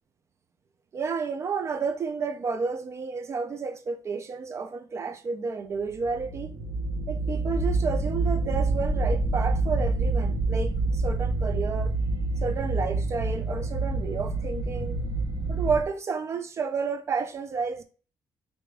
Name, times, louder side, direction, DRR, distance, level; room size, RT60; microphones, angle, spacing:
voice 1, 0.9-6.5 7.1-11.9 12.4-15.0 15.5-17.8, right 5 dB, 35° right, 0.3 m, -31 dB
sound 1, 5.9-15.8, right 2 dB, 75° right, 0.7 m, -27 dB
4.8 x 2.5 x 2.2 m
cardioid pair, 145°, 8 cm